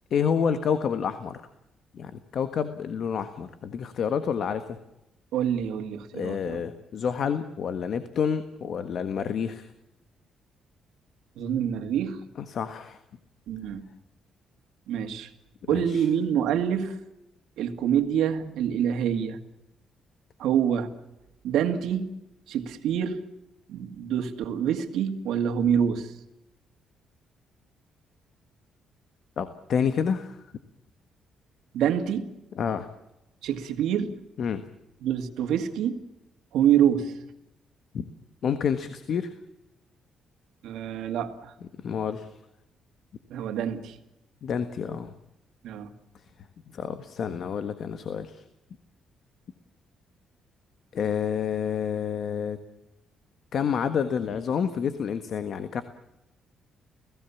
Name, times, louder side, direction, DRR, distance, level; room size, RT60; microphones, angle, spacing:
voice 1, 0.1-1.4 1.9-4.8 6.1-9.7 12.4-13.0 15.7-16.0 29.4-30.4 32.5-32.9 34.4-34.6 37.9-38.1 38.4-39.3 41.8-42.3 44.4-45.1 46.7-48.4 50.9-52.6 53.5-55.8, left 7 dB, 60° left, 10 dB, 1.5 m, -28 dB
voice 2, 5.3-6.6 11.4-12.2 13.5-13.8 14.9-15.3 15.7-17.0 17.6-19.4 20.4-20.9 21.4-22.1 22.5-23.2 23.7-26.1 31.7-32.3 33.4-34.2 35.0-36.0 36.5-37.1 40.6-41.5 43.3-44.0 45.6-45.9, right 9 dB, 85° right, 7 dB, 2.1 m, -26 dB
29.5 x 17.0 x 7.2 m, 0.90 s
cardioid pair, 90°, 0 cm